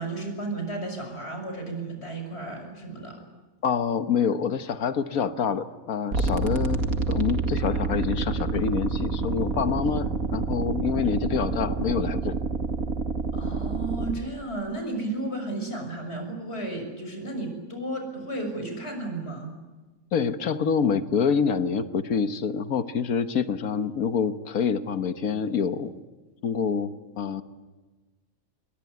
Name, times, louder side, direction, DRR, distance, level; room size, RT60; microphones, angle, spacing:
voice 1, 0.0-3.3 13.3-19.5, right 2 dB, 50° left, 4 dB, 6.5 m, -33 dB
voice 2, 3.6-6.8 7.1-12.3 20.1-25.9 26.4-27.4, left 6 dB, 85° left, 10 dB, 1.6 m, -26 dB
sound 1, 6.1-14.1, right 4 dB, 85° right, 2.5 m, -28 dB
27.5 x 22.5 x 9.5 m, 1.2 s
omnidirectional pair, 1.4 m